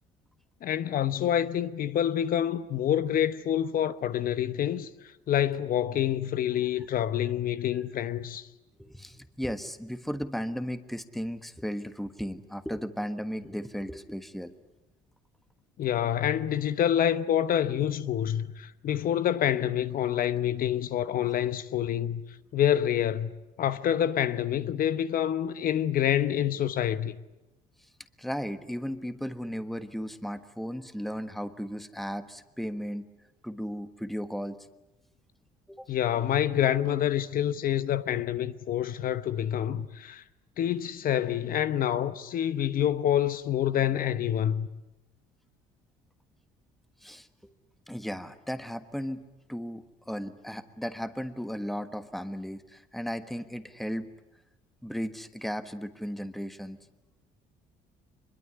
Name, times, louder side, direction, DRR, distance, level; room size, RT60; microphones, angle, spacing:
voice 1, 0.6-4.9 5.3-8.5 15.8-22.2 22.5-23.3 23.6-27.1 35.9-40.2 40.6-44.7, left 10 dB, 55° left, 1.0 m, -27 dB
voice 2, 8.8-14.5 27.8-27.9 28.2-33.1 33.4-34.6 35.7-35.9 47.0-47.5 47.9-54.1 54.8-56.8, equal, ahead, 1.4 m, -35 dB
24.0 x 22.5 x 9.9 m
cardioid pair, 110°, 17 cm